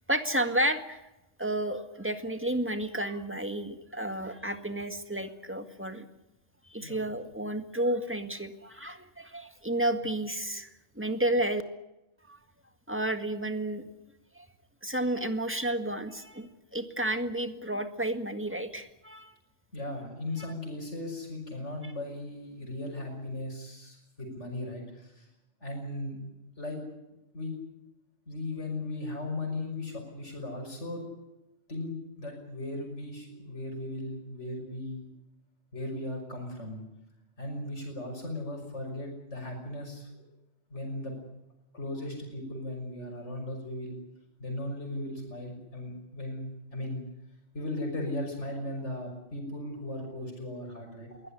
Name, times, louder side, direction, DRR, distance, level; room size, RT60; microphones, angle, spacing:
voice 1, 0.1-1.0 1.4-6.1 6.7-10.7 11.0-11.6 12.3-12.4 12.9-13.8 14.4-14.5 14.8-19.3 20.4-20.5 21.8-21.9, right 1 dB, 10° right, 8 dB, 1.9 m, -31 dB
voice 2, 6.8-7.1 19.7-25.3 25.6-26.2 26.6-26.8 27.3-27.5 28.3-31.0 31.7-35.1 35.7-36.8 37.4-40.3 40.7-41.1 41.7-44.0 44.4-47.0 47.5-51.2, left 1 dB, 70° left, 1 dB, 6.2 m, -37 dB
22.5 x 17.5 x 9.9 m, 0.94 s
omnidirectional pair, 1.3 m